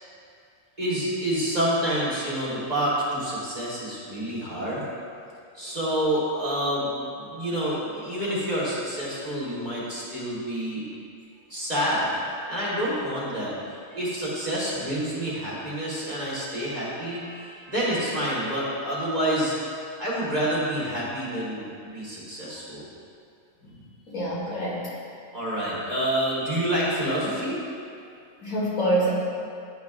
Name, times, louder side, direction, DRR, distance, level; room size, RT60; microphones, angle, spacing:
voice 1, 0.8-4.8 5.5-10.8 11.5-12.1 12.5-13.5 13.9-19.5 20.0-22.9 25.3-27.5, right 1 dB, 30° right, -9 dB, 1.6 m, -28 dB
voice 2, 24.1-24.8 28.4-29.1, right 1 dB, 80° left, -7 dB, 2.1 m, -25 dB
10.5 x 5.2 x 2.5 m, 2.4 s
omnidirectional pair, 1.4 m